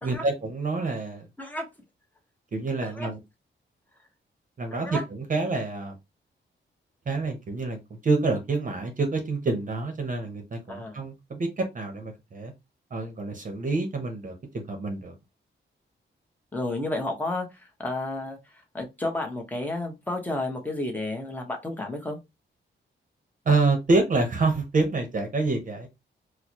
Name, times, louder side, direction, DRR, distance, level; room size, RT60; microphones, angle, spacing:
voice 1, 0.0-1.3 2.5-3.2 4.6-6.0 7.1-12.5 12.9-15.1 23.5-25.9, right 3 dB, 40° right, 0.8 m, -27 dB
voice 2, 4.7-5.0 10.7-11.0 16.5-22.2, left 2 dB, 10° left, 1.0 m, -32 dB
4.4 x 2.2 x 2.9 m
wide cardioid pair, 150°, 20 cm